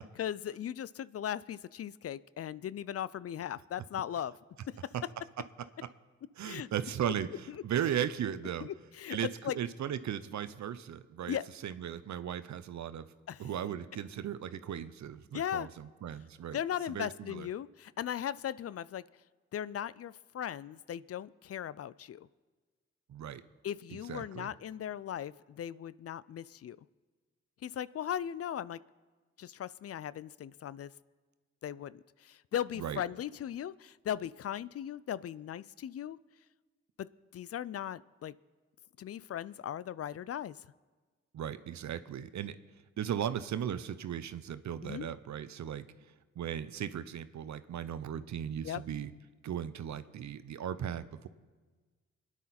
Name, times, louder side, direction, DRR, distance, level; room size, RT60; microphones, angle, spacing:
voice 1, 0.2-4.4 6.4-6.7 8.6-9.2 9.4-9.6 11.3-11.5 13.3-13.4 15.3-15.7 16.5-19.0 19.5-22.3 23.6-26.8 27.6-28.8 29.4-30.9 31.6-36.2 37.0-37.1 37.3-38.4 39.0-40.6 44.8-45.1 48.6-48.8, left 10 dB, 50° left, 19 dB, 0.4 m, -38 dB
voice 2, 6.4-8.7 9.1-11.4 11.6-13.1 13.4-16.6 16.9-17.5 23.1-23.4 24.1-24.5 32.7-33.0 41.3-42.6 43.0-45.9 46.4-49.1 49.4-51.3, right 9 dB, 65° right, 13 dB, 0.7 m, -37 dB
21.5 x 9.9 x 4.3 m, 1.4 s
supercardioid pair, 45°, 30 cm